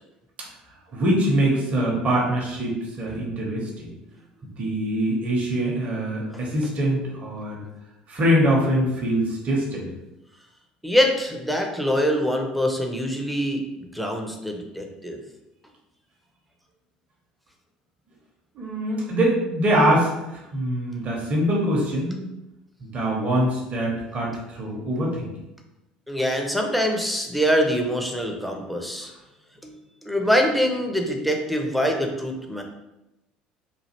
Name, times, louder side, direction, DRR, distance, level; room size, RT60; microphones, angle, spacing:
voice 1, 0.9-3.9 4.4-7.6 8.1-9.9 18.5-22.3 22.8-25.3, right 1 dB, 35° right, -3 dB, 0.8 m, -23 dB
voice 2, 10.8-15.2 26.1-29.1 29.6-29.7 30.0-32.6, equal, ahead, 2 dB, 0.6 m, -24 dB
3.1 x 2.4 x 2.9 m, 0.93 s
figure-of-eight pair, 65°, 4 cm